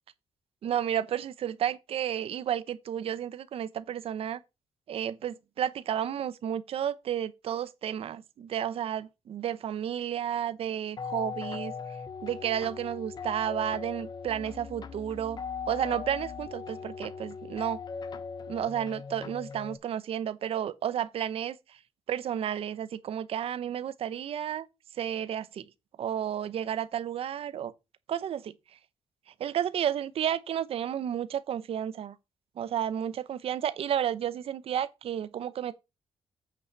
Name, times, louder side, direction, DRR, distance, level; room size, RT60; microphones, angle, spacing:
voice 1, 0.6-4.4 4.9-11.7 12.2-15.4 15.7-17.8 18.5-21.6 22.1-24.7 25.0-25.7 26.0-27.7 28.1-28.5 29.4-32.1 32.6-35.8, right 10 dB, 60° right, 0.7 m, -32 dB
sound 1, 11.0-19.8, left 6 dB, 40° left, 0.9 m, -39 dB
8.3 x 6.0 x 4.5 m
cardioid pair, 155°, 11 cm